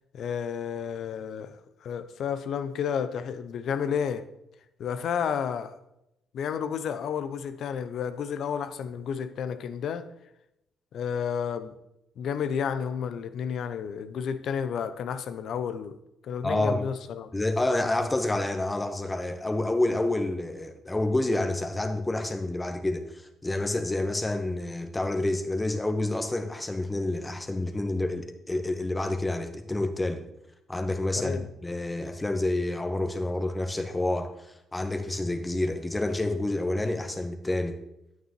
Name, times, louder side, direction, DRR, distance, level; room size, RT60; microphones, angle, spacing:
voice 1, 0.1-4.2 4.8-5.8 6.3-10.1 10.9-11.7 12.2-16.0 16.2-17.3 31.2-31.5, left 7 dB, 60° left, 0.6 m, -31 dB
voice 2, 16.4-16.8 17.3-30.2 30.7-37.8, left 2 dB, 20° left, 1.2 m, -28 dB
9.1 x 9.1 x 3.1 m
hypercardioid pair, 50°, 0 cm